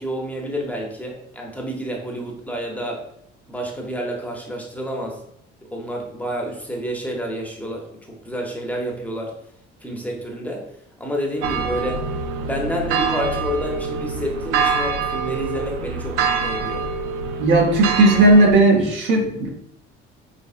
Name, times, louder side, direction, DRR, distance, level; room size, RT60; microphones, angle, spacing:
voice 1, 0.0-3.1 3.5-5.2 5.7-9.3 9.8-10.7 11.0-12.0 12.4-16.8, equal, 5° left, 0 dB, 0.7 m, -29 dB
sound 1, 11.4-18.5, right 5 dB, 85° right, 0.4 m, -25 dB
voice 2, 17.4-19.5, right 2 dB, 65° right, 1 dB, 1.1 m, -15 dB
5.4 x 3.1 x 2.5 m, 0.75 s
cardioid pair, 115°, 21 cm